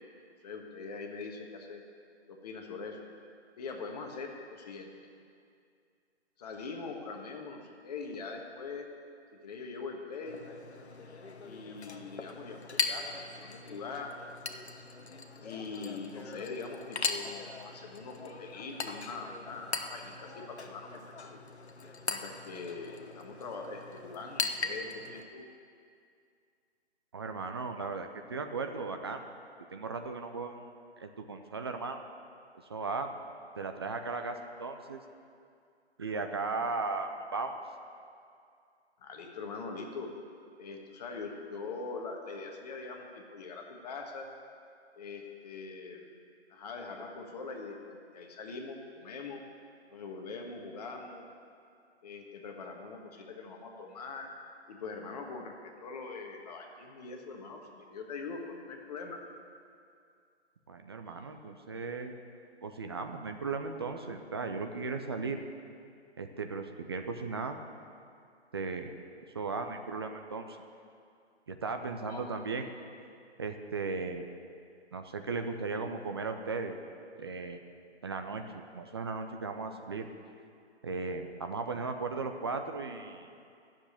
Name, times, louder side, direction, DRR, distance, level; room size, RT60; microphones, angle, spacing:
voice 1, 0.4-1.8 2.3-3.0 3.6-5.1 6.4-8.9 9.4-10.4 11.4-14.1 15.4-21.4 22.1-25.5 39.0-40.1 40.6-44.3 44.9-46.1 46.5-49.4 49.9-51.2 52.0-54.3 54.7-59.2 72.1-72.4, left 4 dB, 35° left, 2 dB, 1.5 m, -42 dB
Chink clink, 10.3-25.2, left 4 dB, 70° left, 1.1 m, -39 dB
voice 2, 27.1-29.2 29.7-30.7 31.0-32.0 32.7-33.1 33.6-35.0 36.0-37.6 60.7-62.1 62.6-65.4 66.2-67.6 68.5-68.9 69.3-70.6 71.5-72.7 73.4-74.3 74.9-76.8 77.2-77.6 78.0-80.1 80.8-83.3, right 4 dB, 25° right, 5 dB, 0.5 m, -36 dB
11.5 x 7.4 x 9.3 m, 2.4 s
figure-of-eight pair, 140°, 34 cm